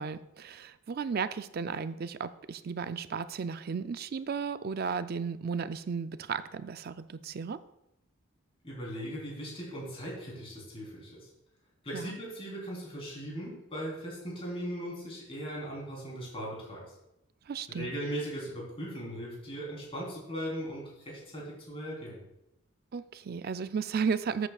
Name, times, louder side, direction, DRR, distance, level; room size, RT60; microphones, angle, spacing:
voice 1, 0.0-7.6 11.9-12.1 17.5-17.9 22.9-24.5, right 5 dB, 50° right, 12 dB, 0.4 m, -34 dB
voice 2, 8.6-11.3 11.8-16.8 17.7-22.2, equal, 30° left, -4 dB, 3.6 m, -38 dB
12.5 x 8.2 x 2.4 m, 0.85 s
head